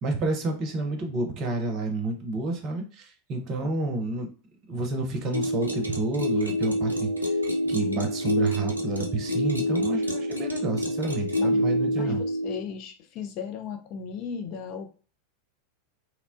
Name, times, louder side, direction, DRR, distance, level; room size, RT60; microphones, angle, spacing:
voice 1, 0.0-4.3 4.7-7.3 7.7-12.2, right 2 dB, 40° right, 4 dB, 0.6 m, -30 dB
sound 1, 5.3-12.6, equal, 85° right, 0.4 m, -27 dB
voice 2, 11.3-11.7 12.0-14.9, left 7 dB, 40° left, 6 dB, 0.4 m, -36 dB
2.8 x 2.1 x 2.5 m, 0.38 s
figure-of-eight pair, 85°, 0 cm